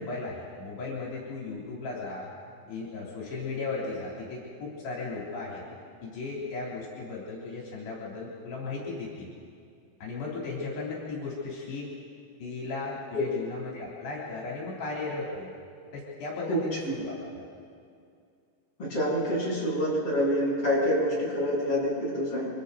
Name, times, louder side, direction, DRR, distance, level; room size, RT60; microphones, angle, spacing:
voice 1, 0.0-2.3 2.7-5.6 6.0-9.3 10.0-11.9 12.4-15.6 15.9-17.5, left 3 dB, 80° left, -5 dB, 5.4 m, -36 dB
voice 2, 18.8-22.5, equal, 30° left, -7 dB, 8.7 m, -27 dB
29.0 x 25.0 x 4.0 m, 2.3 s
omnidirectional pair, 4.8 m